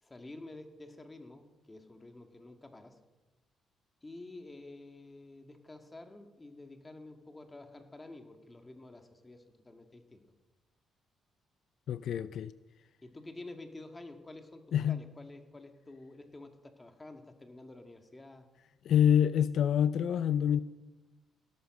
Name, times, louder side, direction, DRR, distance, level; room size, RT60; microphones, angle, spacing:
voice 1, 0.0-3.0 4.0-10.2 13.0-18.5, left 2 dB, 20° left, 2.1 m, -50 dB
voice 2, 11.9-12.5 14.7-15.0 18.8-20.6, left 9 dB, 70° left, 0.5 m, -26 dB
17.0 x 12.5 x 6.6 m
cardioid pair, 90°, 0 cm